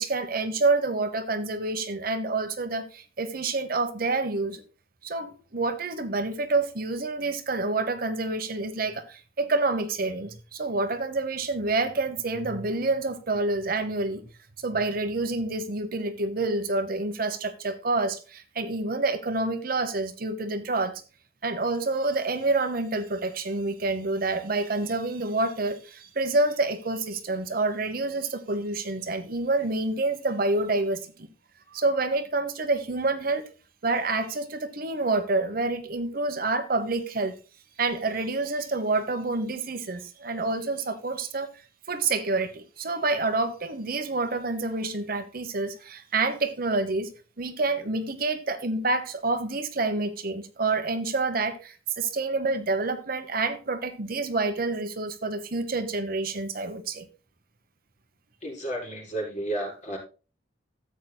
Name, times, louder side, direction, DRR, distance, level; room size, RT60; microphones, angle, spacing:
voice 1, 0.0-4.6 5.0-14.3 14.6-21.0 21.4-31.3 31.7-33.5 33.8-37.3 37.8-41.5 41.9-47.1 47.4-57.1, right 3 dB, 50° right, 1.0 m, -28 dB
voice 2, 58.4-60.0, right 1 dB, 40° left, 4.1 m, -32 dB
13.5 x 8.4 x 2.3 m
head